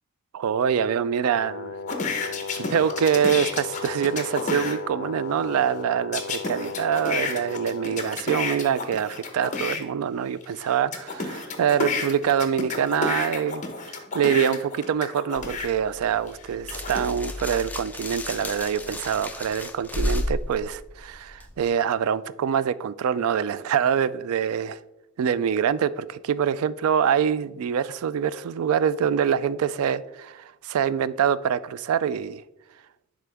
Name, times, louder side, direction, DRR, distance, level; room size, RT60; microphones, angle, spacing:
voice 1, 0.3-1.8 2.5-24.8 25.2-32.4, right 8 dB, 70° right, 0.3 m, -25 dB
Brass instrument, 1.2-8.2, left 4 dB, 60° left, 0.5 m, -36 dB
sound 1, 1.9-4.8 6.1-9.8 10.4-15.7 16.3-17.1, left 4 dB, 35° left, 0.8 m, -31 dB
sound 2, 15.4-21.7, left 1 dB, 5° left, 0.4 m, -33 dB
10.5 x 3.8 x 3.4 m
head